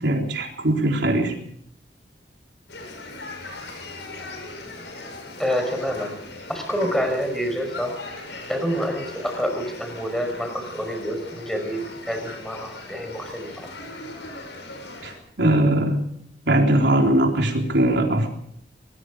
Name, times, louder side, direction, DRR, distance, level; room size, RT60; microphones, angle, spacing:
voice 1, 0.0-1.3 15.0-15.1 15.4-16.0 16.5-18.3, right 1 dB, 75° right, 2 dB, 3.9 m, -20 dB
sound 1, 2.7-15.1, left 2 dB, 80° left, 7.4 m, -39 dB
voice 2, 5.4-6.1 6.5-8.0 8.5-13.7, equal, ahead, 5 dB, 5.2 m, -27 dB
25.5 x 20.5 x 5.0 m, 0.66 s
head